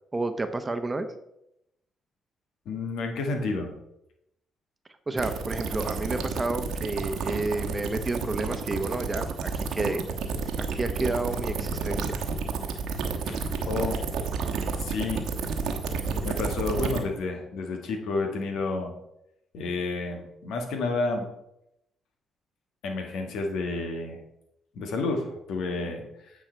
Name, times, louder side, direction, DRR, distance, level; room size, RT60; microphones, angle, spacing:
voice 1, 0.1-1.1 5.1-10.0 10.6-12.2, right 2 dB, 25° right, 9 dB, 0.9 m, -30 dB
voice 2, 2.6-3.7 13.3-14.0 14.8-15.3 16.2-18.9 19.5-21.3 22.8-24.2 24.7-26.3, left 3 dB, 75° left, 4 dB, 1.5 m, -30 dB
sound 1, 5.2-17.0, right 5 dB, 75° right, 1.2 m, -30 dB
9.0 x 4.9 x 4.4 m, 0.82 s
supercardioid pair, 60°, 0 cm